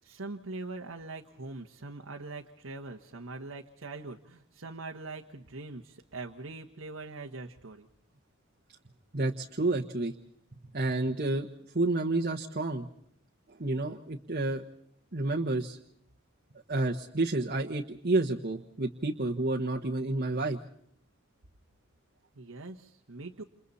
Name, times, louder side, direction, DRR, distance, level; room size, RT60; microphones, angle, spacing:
voice 1, 0.0-7.9 22.3-23.4, right 3 dB, 85° right, 2 dB, 1.4 m, -42 dB
voice 2, 9.1-10.1 10.7-11.5 11.7-12.9 13.5-14.6 15.1-15.8 16.7-20.6, right 2 dB, 45° right, 2 dB, 1.3 m, -30 dB
29.0 x 28.5 x 4.2 m, 0.71 s
head